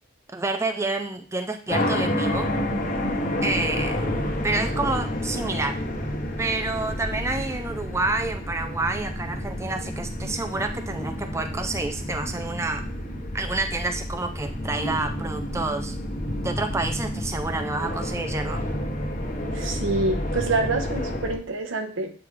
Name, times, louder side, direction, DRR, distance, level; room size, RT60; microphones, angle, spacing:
voice 1, 0.3-2.5 3.4-4.1 4.4-5.8 6.4-12.8 13.3-16.0 16.4-18.6, right 3 dB, 15° right, 5 dB, 0.4 m, -28 dB
sound 1, 1.7-21.4, left 1 dB, 40° left, 1.1 m, -29 dB
voice 2, 19.5-22.1, right 3 dB, 85° right, 5 dB, 0.9 m, -26 dB
8.6 x 3.6 x 3.2 m, 0.43 s
head